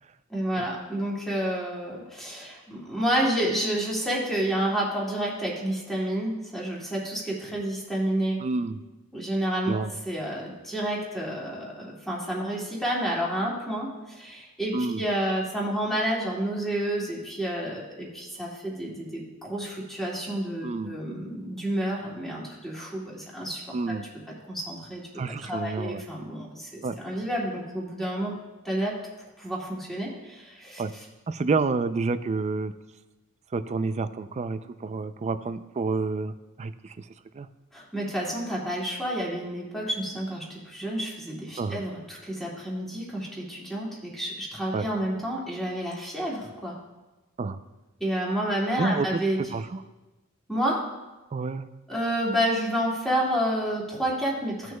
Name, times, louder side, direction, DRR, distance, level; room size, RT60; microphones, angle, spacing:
voice 1, 0.3-8.4 9.1-9.8 10.0-23.6 24.5-28.3 28.6-28.9 29.4-30.8 37.7-46.8 48.0-49.4 50.5-50.8 51.9-54.7, right 1 dB, ahead, -4 dB, 2.1 m, -29 dB
voice 2, 8.4-8.8 9.7-9.9 14.7-15.0 20.6-21.0 23.7-24.1 25.1-26.0 26.8-26.9 30.8-30.9 31.3-32.7 33.5-37.0 37.3-37.5 41.6-41.8 44.7-44.9 47.4-47.6 48.7-49.1 49.5-49.8 51.3-51.7, right 3 dB, 30° right, 11 dB, 0.4 m, -29 dB
17.0 x 6.2 x 2.2 m, 1.1 s
head